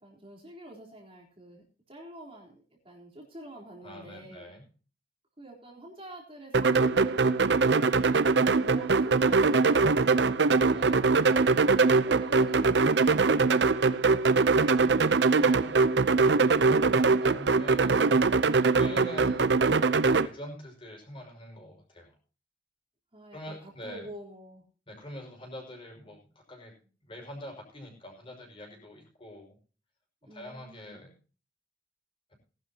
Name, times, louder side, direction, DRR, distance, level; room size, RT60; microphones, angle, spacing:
voice 1, 0.0-4.5 5.4-11.0 11.8-13.7 23.1-24.6 30.2-31.0, right 1 dB, 30° right, -2 dB, 3.8 m, -48 dB
voice 2, 3.8-4.6 10.7-11.5 14.5-18.1 18.4-19.6 20.0-22.1 23.3-24.1 24.9-26.2 26.5-26.7 27.0-29.6 30.3-31.1, left 1 dB, 30° left, 0 dB, 5.8 m, -45 dB
sound 1, 6.5-20.3, right 4 dB, 70° right, 0.7 m, -22 dB
19.5 x 11.5 x 2.9 m, 0.38 s
head